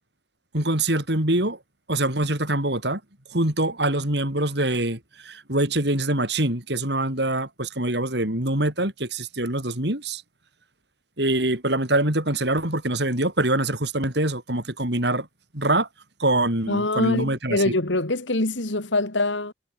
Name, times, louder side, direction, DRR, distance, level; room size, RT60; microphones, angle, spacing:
voice 1, 0.5-1.6 1.9-3.0 3.3-10.2 11.2-15.3 15.5-15.9 16.2-17.7, right 1 dB, 65° right, 4.9 m, -24 dB
voice 2, 16.7-19.5, left 2 dB, 80° left, 2.7 m, -24 dB
head